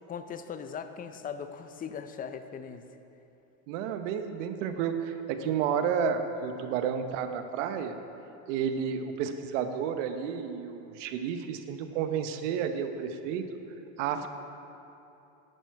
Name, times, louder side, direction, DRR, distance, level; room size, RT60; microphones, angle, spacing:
voice 1, 0.1-2.8, left 7 dB, 25° left, 9 dB, 0.5 m, -39 dB
voice 2, 3.7-7.9 8.5-13.4 14.0-14.3, right 7 dB, 75° right, 8 dB, 1.0 m, -31 dB
11.0 x 9.1 x 4.6 m, 2.8 s
supercardioid pair, 120°, 37 cm